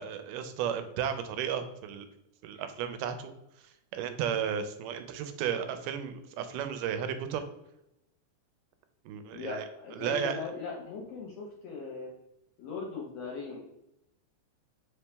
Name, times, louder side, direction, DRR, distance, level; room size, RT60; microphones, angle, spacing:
voice 1, 0.0-2.1 2.4-3.3 3.6-7.4 9.1-9.7 10.0-10.4, right 8 dB, 90° right, 9 dB, 2.1 m, -34 dB
voice 2, 9.3-12.1 12.6-13.6, left 4 dB, 75° left, -1 dB, 1.5 m, -39 dB
4.8 x 2.9 x 3.4 m, 0.85 s
omnidirectional pair, 3.7 m